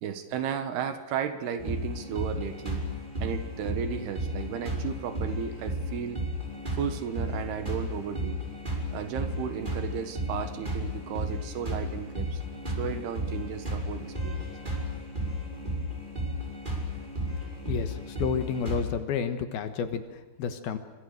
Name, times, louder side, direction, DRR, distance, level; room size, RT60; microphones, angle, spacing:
voice 1, 0.0-2.8 3.2-6.2 6.7-8.4 8.9-12.4 12.7-14.5, right 8 dB, 70° right, 9 dB, 3.3 m, -34 dB
sound 1, 1.6-18.8, equal, 10° right, 6.0 m, -33 dB
voice 2, 17.7-20.8, left 7 dB, 70° left, 9 dB, 3.1 m, -31 dB
27.0 x 25.5 x 6.6 m, 1.2 s
omnidirectional pair, 4.9 m